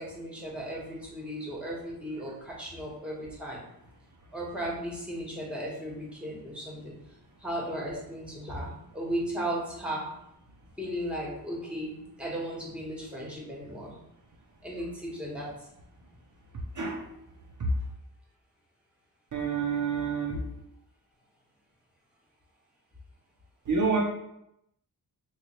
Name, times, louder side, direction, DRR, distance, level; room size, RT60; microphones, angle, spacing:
voice 1, 0.0-3.7 4.3-6.9 7.4-10.1 10.8-13.9 14.6-15.7, right 1 dB, 5° right, -4 dB, 1.1 m, -36 dB
voice 2, 16.7-17.1 17.6-17.7 19.3-20.5 23.7-24.0, right 4 dB, 50° right, -3 dB, 0.6 m, -28 dB
3.1 x 2.3 x 4.2 m, 0.80 s
wide cardioid pair, 90°, 39 cm